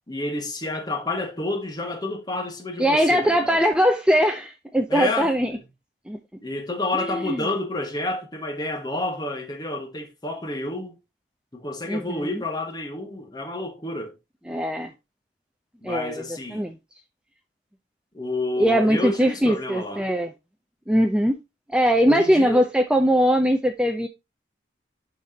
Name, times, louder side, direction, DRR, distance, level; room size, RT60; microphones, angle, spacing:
voice 1, 0.1-3.6 4.9-5.3 6.4-10.9 11.5-14.1 15.8-16.6 18.1-20.1 22.0-22.6, left 2 dB, 25° left, 1.4 m, -29 dB
voice 2, 2.8-5.5 6.1-6.2 6.9-7.5 11.9-12.4 14.5-14.9 15.8-16.2 16.5-16.8 18.6-20.3 20.9-21.4 21.7-24.1, equal, 5° right, 0.6 m, -21 dB
11.5 x 4.1 x 2.8 m
head